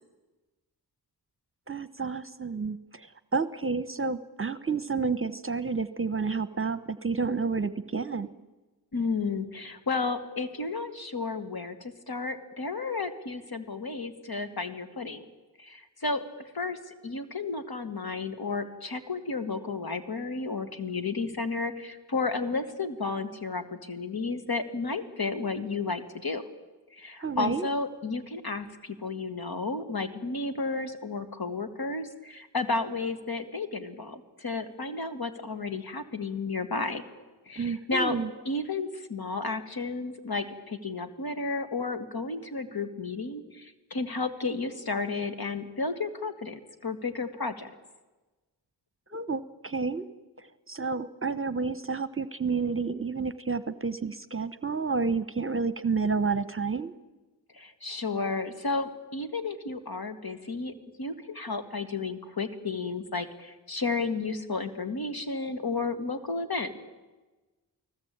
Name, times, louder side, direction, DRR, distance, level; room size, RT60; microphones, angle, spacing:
voice 1, 1.7-8.3 27.2-27.7 37.5-38.3 49.1-50.1 50.7-56.9, right 4 dB, 30° right, 13 dB, 1.1 m, -30 dB
voice 2, 8.9-15.2 15.6-16.2 16.5-26.4 26.9-37.0 37.5-38.2 38.4-47.7 57.5-66.8, left 3 dB, 55° left, 8 dB, 2.6 m, -32 dB
29.5 x 19.0 x 8.9 m, 1.2 s
cardioid pair, 50°, 43 cm